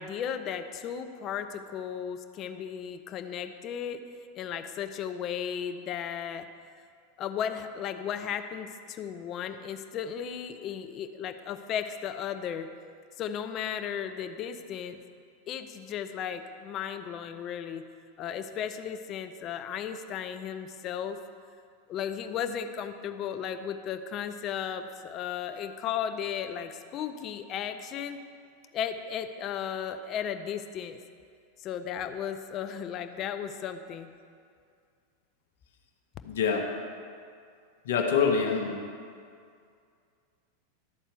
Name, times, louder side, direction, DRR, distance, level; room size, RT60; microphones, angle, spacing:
voice 1, 0.0-4.0 4.4-6.5 7.2-12.7 13.2-15.0 15.5-17.9 18.2-21.2 21.9-28.2 28.7-31.0 31.6-34.1, left 8 dB, 40° left, 8 dB, 0.6 m, -35 dB
voice 2, 36.2-36.7 37.8-38.8, left 6 dB, 75° left, 2 dB, 1.0 m, -25 dB
12.0 x 4.3 x 6.8 m, 2.3 s
hypercardioid pair, 100°, 0 cm